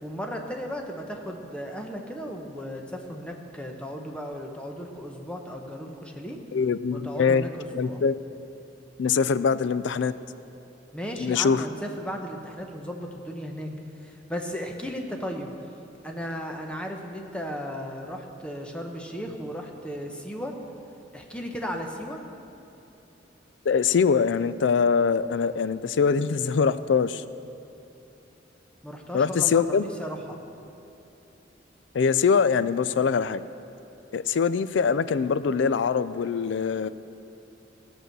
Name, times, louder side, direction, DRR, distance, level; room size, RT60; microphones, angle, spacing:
voice 1, 0.0-6.4 6.9-8.0 10.9-13.7 14.0-15.5 16.0-20.6 21.1-22.2 28.8-30.4, equal, 5° left, 2 dB, 1.0 m, -35 dB
voice 2, 6.5-7.4 7.7-8.1 9.0-10.1 11.2-11.6 23.7-27.2 29.1-29.8 31.9-33.4 34.1-36.9, left 6 dB, 70° left, 14 dB, 0.4 m, -23 dB
16.5 x 6.2 x 6.7 m, 2.8 s
head